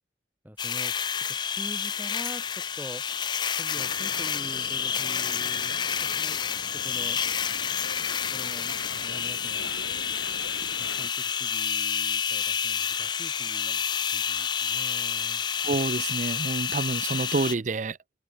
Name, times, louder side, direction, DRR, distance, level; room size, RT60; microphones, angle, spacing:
voice 1, 0.4-1.0 1.3-3.0 3.6-6.4 6.7-7.2 8.3-9.7 10.8-13.8 14.1-15.4, equal, 10° right, 6.7 m, -44 dB
sound 1, 0.6-17.5, left 7 dB, 25° left, 0.3 m, -29 dB
sound 2, 3.7-11.1, left 4 dB, 90° left, 1.4 m, -42 dB
voice 2, 15.6-18.0, right 3 dB, 40° right, 0.5 m, -28 dB
open air
head